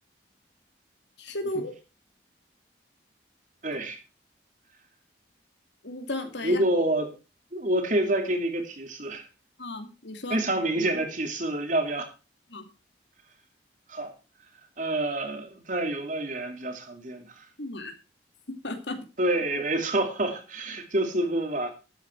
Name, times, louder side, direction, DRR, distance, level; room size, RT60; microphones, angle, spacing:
voice 1, 1.2-1.7 5.8-6.6 9.6-10.4 12.5-12.7 17.6-17.9 18.6-19.0, left 1 dB, 70° left, 2.4 m, -34 dB
voice 2, 3.6-4.0 6.4-7.1 7.5-9.3 10.3-12.1 13.9-14.1 14.8-17.4 19.2-21.7, right 1 dB, 45° right, 2.8 m, -27 dB
12.5 x 8.8 x 4.6 m
head